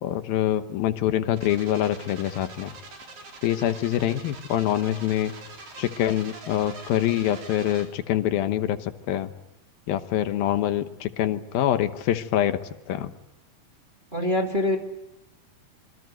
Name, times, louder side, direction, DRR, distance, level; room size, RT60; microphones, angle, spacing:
voice 1, 0.0-2.7 3.4-5.3 5.8-9.3 9.9-12.6 12.9-13.1, left 12 dB, 80° left, 10 dB, 3.0 m, -25 dB
sound 1, 1.4-7.9, right 3 dB, 65° right, 5.9 m, -44 dB
voice 2, 14.1-14.8, left 1 dB, 15° right, 2 dB, 1.9 m, -24 dB
26.5 x 24.0 x 9.3 m, 0.88 s
omnidirectional pair, 4.2 m